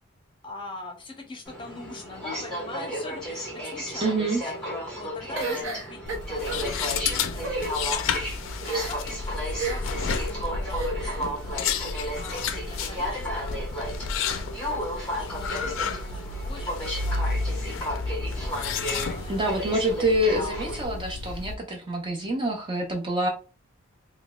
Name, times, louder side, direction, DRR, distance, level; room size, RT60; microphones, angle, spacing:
voice 1, 0.4-4.7 4.9-8.1 8.6-11.7 12.2-13.6 14.4-17.6 18.9-19.7, left 2 dB, 25° left, 2 dB, 0.6 m, -43 dB
Aircraft, 1.4-20.9, equal, 5° left, 1.3 m, -34 dB
voice 2, 4.0-4.4 19.3-23.3, right 1 dB, 25° right, 1 dB, 0.4 m, -26 dB
sound 1, 5.4-6.7 7.3-7.7 8.6-9.1 9.6-10.0 10.7-11.2, right 3 dB, 70° right, 0.8 m, -32 dB
sound 2, 6.1-21.5, left 4 dB, 70° left, 0.3 m, -31 dB
3.8 x 2.2 x 2.3 m, 0.36 s
head